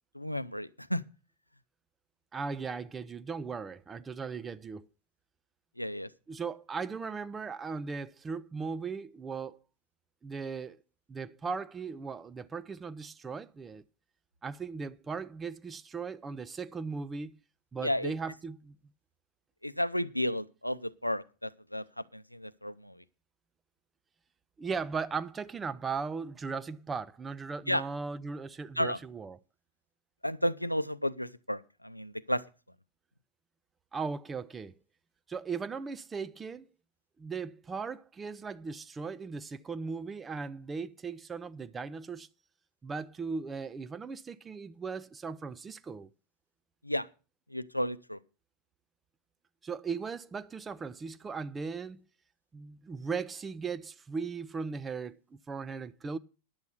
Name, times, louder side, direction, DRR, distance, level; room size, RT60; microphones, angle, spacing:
voice 1, 0.1-1.0 5.8-6.1 17.8-18.1 19.6-23.0 27.7-27.8 28.8-29.0 30.2-32.4 46.8-47.1 47.5-48.2, left 1 dB, 90° left, 0.6 m, -32 dB
voice 2, 2.3-4.9 6.3-9.6 10.2-10.8 11.1-13.8 14.4-17.3 17.7-18.7 24.6-29.4 33.9-34.7 35.3-36.7 37.2-42.3 42.8-46.1 49.6-52.0 52.5-56.2, right 5 dB, 15° right, 0.6 m, -38 dB
10.5 x 8.1 x 6.8 m
figure-of-eight pair, 90°, 0 cm